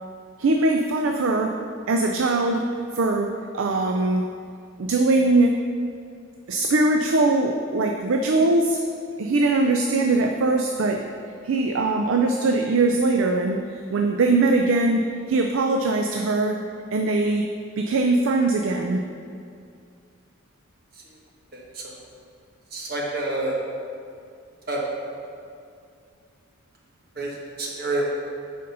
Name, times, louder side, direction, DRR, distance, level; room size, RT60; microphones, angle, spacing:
voice 1, 0.4-1.6 1.9-2.7 2.9-4.2 4.8-5.6 6.5-8.8 9.2-11.0 11.4-16.6 16.9-17.4 17.8-19.0, right 2 dB, 75° right, 3 dB, 0.4 m, -21 dB
voice 2, 21.5-21.9 22.7-23.6 24.7-24.8 27.2-27.3 27.6-28.0, right 2 dB, 45° right, -3 dB, 1.3 m, -28 dB
6.7 x 5.2 x 5.4 m, 2.4 s
head